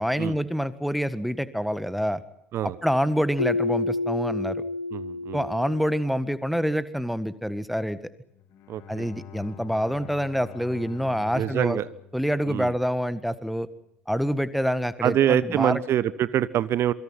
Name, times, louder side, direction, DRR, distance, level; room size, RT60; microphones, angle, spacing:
voice 1, 0.0-2.2 2.8-4.6 5.3-8.0 8.9-11.8 12.1-13.7 14.1-15.8, equal, ahead, 15 dB, 1.7 m, -26 dB
Keyboard (musical), 3.4-6.2, left 2 dB, 85° left, 1.2 m, -29 dB
voice 2, 4.9-5.4 8.7-9.1 11.3-11.8 12.5-12.7 15.0-16.9, right 11 dB, 40° right, 18 dB, 1.1 m, -25 dB
Bowed string instrument, 8.3-13.5, left 8 dB, 45° left, 3.4 m, -46 dB
27.0 x 24.5 x 5.8 m, 0.77 s
figure-of-eight pair, 70°, 7 cm